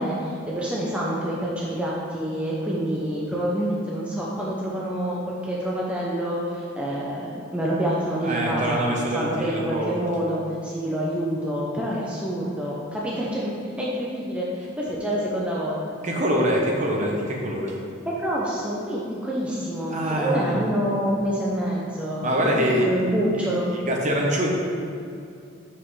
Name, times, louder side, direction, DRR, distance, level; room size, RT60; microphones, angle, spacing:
voice 1, 0.0-8.8 9.1-15.8 18.1-22.2 22.6-23.7, equal, 5° right, -5 dB, 0.6 m, -27 dB
voice 2, 8.2-10.0 16.0-17.8 19.9-20.7 22.2-22.9 23.3-24.5, equal, 35° right, -1 dB, 0.9 m, -24 dB
7.4 x 5.8 x 3.2 m, 2.5 s
head